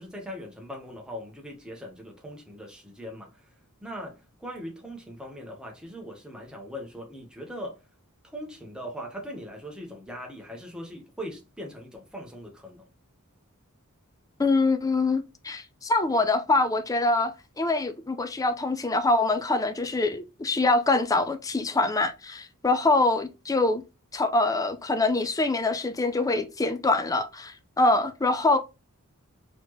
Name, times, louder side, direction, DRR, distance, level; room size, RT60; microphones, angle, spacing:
voice 1, 0.0-3.4 3.8-7.8 8.2-12.8, equal, 5° right, 1.0 m, -40 dB
voice 2, 14.4-23.8 24.1-28.6, left 2 dB, 15° left, 0.4 m, -24 dB
4.0 x 3.0 x 3.1 m
head